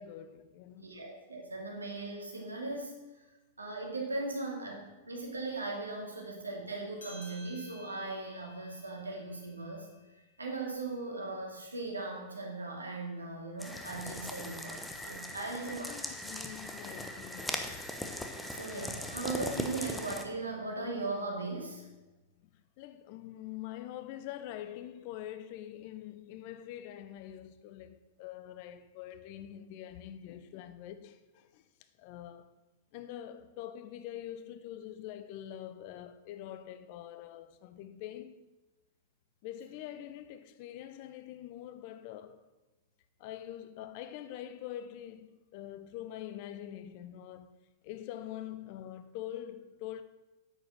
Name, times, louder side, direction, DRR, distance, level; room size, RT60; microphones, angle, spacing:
voice 1, 0.0-1.0 6.2-6.3 15.5-17.8 21.8-21.9 22.4-22.5 22.8-31.6 32.0-32.5 32.9-38.4 39.4-42.4 43.2-47.5 47.8-50.0, left 11 dB, 50° left, 0.8 m, -45 dB
voice 2, 0.8-2.9 3.6-9.9 10.4-15.9 18.5-21.9, right 3 dB, 85° right, 2.5 m, -38 dB
sound 1, 7.0-11.9, equal, 70° left, 2.4 m, -56 dB
sound 2, 13.6-20.3, left 1 dB, 5° left, 1.1 m, -39 dB
9.1 x 7.8 x 6.3 m
figure-of-eight pair, 100°, 0 cm